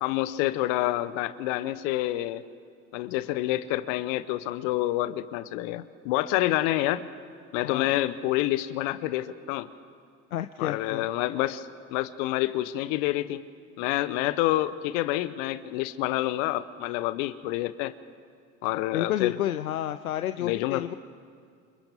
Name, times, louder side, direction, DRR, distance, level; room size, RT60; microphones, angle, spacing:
voice 1, 0.0-2.4 2.9-7.1 7.5-9.7 10.6-13.4 13.8-17.9 18.6-19.4 20.4-20.9, left 15 dB, 65° left, 14 dB, 0.9 m, -28 dB
voice 2, 10.3-11.1 18.9-20.9, left 12 dB, 90° left, 10 dB, 0.6 m, -30 dB
28.0 x 27.5 x 3.6 m, 2.2 s
hypercardioid pair, 65°, 41 cm